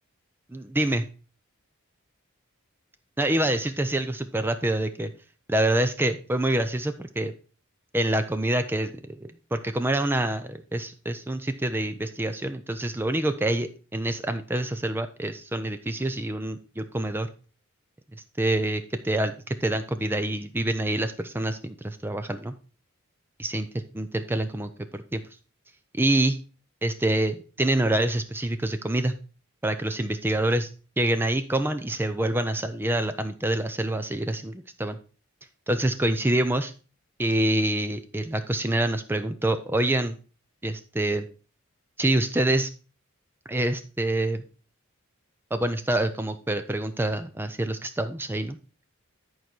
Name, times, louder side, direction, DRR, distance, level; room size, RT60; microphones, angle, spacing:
voice 1, 0.5-1.0 3.2-5.1 5.5-7.3 7.9-17.3 18.4-22.5 23.4-25.2 26.0-26.4 26.8-29.1 29.6-30.7 31.0-35.0 35.7-36.7 37.2-40.2 40.6-41.3 42.0-42.7 43.5-44.4 45.5-48.6, right 1 dB, 10° right, 9 dB, 0.4 m, -26 dB
10.5 x 4.7 x 4.4 m, 0.36 s
head